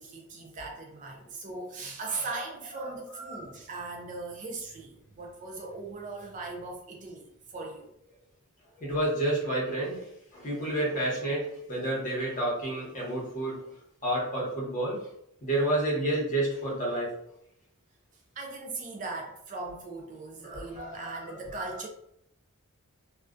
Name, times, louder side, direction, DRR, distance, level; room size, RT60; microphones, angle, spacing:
voice 1, 0.0-7.9 18.4-21.9, right 3 dB, 35° right, 0 dB, 0.4 m, -39 dB
voice 2, 2.7-3.5 8.8-10.1 10.3-13.7 14.0-15.0 15.4-17.1 20.4-21.8, right 1 dB, 35° left, -4 dB, 0.9 m, -30 dB
2.3 x 2.2 x 2.4 m, 0.76 s
head